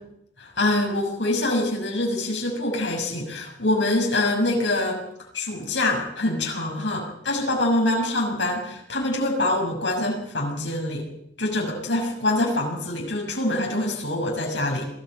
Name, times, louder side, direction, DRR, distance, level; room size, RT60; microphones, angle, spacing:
voice 1, 0.4-5.0 5.3-11.1 11.4-14.9, left 1 dB, 90° left, 0 dB, 6.4 m, -25 dB
22.0 x 14.5 x 9.3 m, 0.76 s
head